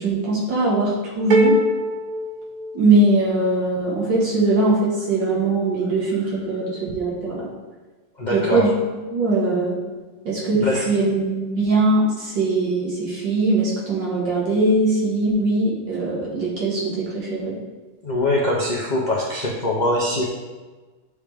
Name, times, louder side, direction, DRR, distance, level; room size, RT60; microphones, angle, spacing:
voice 1, 0.0-1.6 2.7-7.5 8.3-8.8 9.1-9.8 10.3-17.6, right 2 dB, 85° right, -5 dB, 2.3 m, -21 dB
sound 1, 1.3-3.3, equal, 60° right, 1.0 m, -22 dB
voice 2, 8.2-8.7 10.2-10.9 18.0-20.3, left 1 dB, 65° left, -4 dB, 0.4 m, -23 dB
9.5 x 3.5 x 3.4 m, 1.3 s
omnidirectional pair, 1.9 m